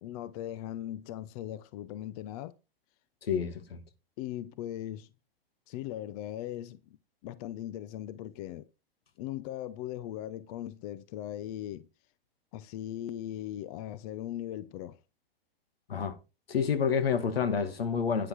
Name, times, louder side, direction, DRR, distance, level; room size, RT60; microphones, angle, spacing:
voice 1, 0.0-2.5 4.2-5.1 5.7-6.8 7.2-8.7 9.2-11.9 12.5-15.0, left 12 dB, 40° left, 0.7 m, -39 dB
voice 2, 3.2-3.8 15.9-16.2 16.5-18.3, left 6 dB, 90° left, 2.0 m, -29 dB
9.9 x 6.4 x 4.6 m
hypercardioid pair, 135°, 29 cm